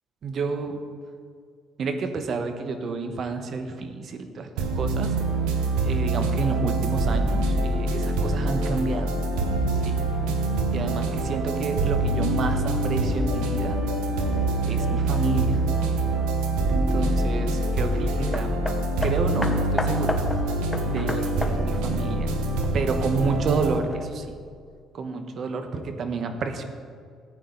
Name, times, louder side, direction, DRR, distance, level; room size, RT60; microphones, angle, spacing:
voice 1, 0.2-0.8 1.8-4.5 4.8-5.1 5.8-9.1 9.9-10.0 10.7-13.8 14.6-15.6 16.7-18.5 19.0-20.2 20.9-22.4 22.7-24.2 24.9-26.6, right 4 dB, 55° right, 7 dB, 1.2 m, -29 dB
sound 1, 4.6-23.8, right 2 dB, 90° right, 1.2 m, -25 dB
Hammer, 18.3-23.1 23.9-24.0, left 1 dB, 5° left, 1.1 m, -33 dB
14.5 x 9.1 x 3.9 m, 2.2 s
supercardioid pair, 80°, 0 cm